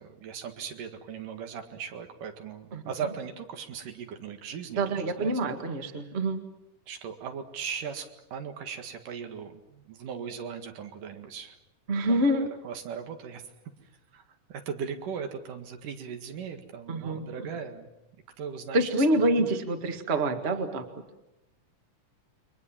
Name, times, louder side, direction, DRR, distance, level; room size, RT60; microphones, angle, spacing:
voice 1, 0.0-5.3 6.9-11.6 12.1-13.5 14.1-14.2 14.5-17.9 18.4-19.6, right 7 dB, 85° right, 6 dB, 3.5 m, -38 dB
voice 2, 4.8-6.4 11.9-12.5 16.9-17.5 18.7-20.8, right 1 dB, 25° right, 6 dB, 1.5 m, -26 dB
29.0 x 23.0 x 7.4 m, 0.94 s
omnidirectional pair, 3.6 m